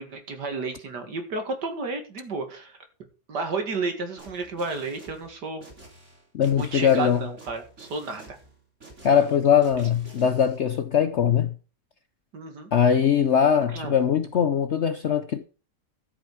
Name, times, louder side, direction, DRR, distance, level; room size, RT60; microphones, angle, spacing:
voice 1, 0.0-2.8 3.3-5.6 6.5-8.4 12.3-12.7 13.7-14.0, right 3 dB, 70° right, 2.6 m, -32 dB
sound 1, 4.2-10.6, right 2 dB, 40° right, 3.8 m, -49 dB
voice 2, 6.3-7.2 9.0-11.5 12.7-15.4, left 8 dB, 60° left, 0.7 m, -21 dB
13.0 x 8.4 x 4.9 m
omnidirectional pair, 1.9 m